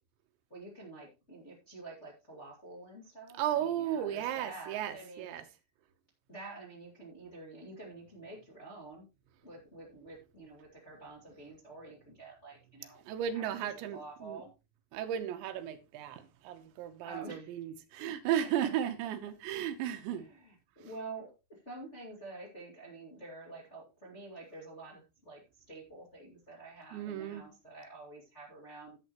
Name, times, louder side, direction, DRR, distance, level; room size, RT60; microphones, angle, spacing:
voice 1, 0.5-5.3 6.3-9.1 9.4-13.0 13.3-14.5 17.0-17.6 20.1-25.4 25.7-29.0, right 3 dB, 25° left, 1.5 m, -48 dB
voice 2, 3.3-5.4 13.1-14.4 14.9-20.3 26.9-27.4, right 10 dB, 85° right, 3.2 m, -35 dB
11.0 x 8.7 x 3.0 m
omnidirectional pair, 5.3 m